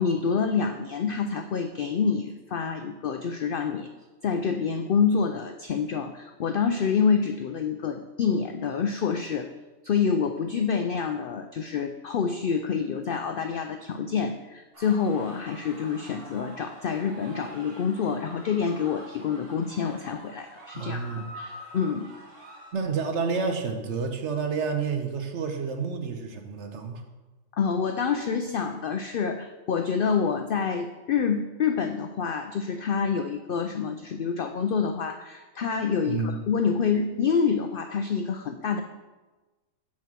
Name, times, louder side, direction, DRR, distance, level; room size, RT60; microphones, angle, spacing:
voice 1, 0.0-3.9 4.2-9.5 9.8-22.1 27.5-38.8, left 6 dB, 85° left, 7 dB, 0.4 m, -27 dB
sound 1, 14.7-22.7, right 1 dB, 45° right, 2.0 m, -46 dB
voice 2, 20.7-21.3 22.7-27.0 36.1-36.4, right 5 dB, 60° right, 5 dB, 1.1 m, -29 dB
8.5 x 4.5 x 6.0 m, 1.2 s
omnidirectional pair, 1.5 m